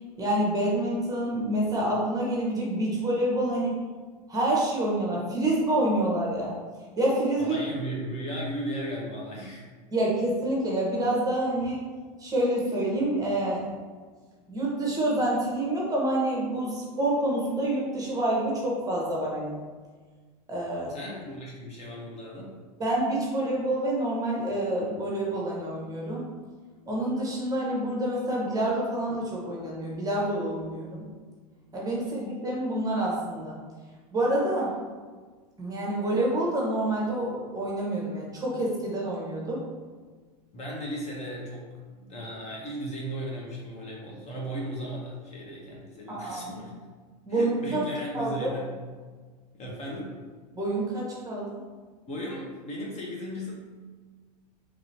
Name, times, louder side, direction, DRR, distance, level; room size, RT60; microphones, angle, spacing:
voice 1, 0.2-3.7 4.3-6.5 7.0-7.6 9.9-11.8 12.2-13.6 14.5-19.6 20.5-20.9 22.8-26.2 26.9-31.0 31.7-33.6 34.1-34.7 35.6-39.6 46.1-46.5 47.3-47.8 48.1-48.5 50.5-51.5, right 1 dB, 15° right, -4 dB, 0.9 m, -27 dB
voice 2, 7.4-9.6 20.9-22.5 40.5-41.7 42.0-46.7 47.3-48.7 49.5-50.1 52.1-53.5, equal, 30° left, -3 dB, 0.8 m, -36 dB
3.0 x 2.9 x 2.7 m, 1.5 s
hypercardioid pair, 100°, 21 cm